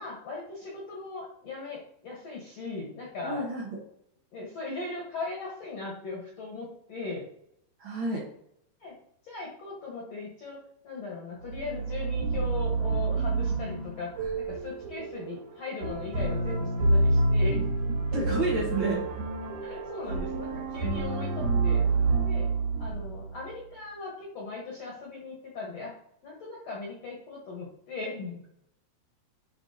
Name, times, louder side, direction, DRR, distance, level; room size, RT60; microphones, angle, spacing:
voice 1, 0.0-3.4 4.3-7.3 8.8-9.0 9.2-17.7 19.6-21.8 22.2-22.5 22.8-25.9 26.2-28.4, left 3 dB, 65° left, -3 dB, 1.7 m, -39 dB
voice 2, 3.2-3.7 7.8-8.2 18.1-19.0, right 2 dB, 85° right, -4 dB, 1.1 m, -30 dB
sound 1, 11.4-23.5, right 3 dB, 65° right, 1.7 m, -28 dB
11.0 x 4.2 x 2.7 m, 0.71 s
omnidirectional pair, 4.6 m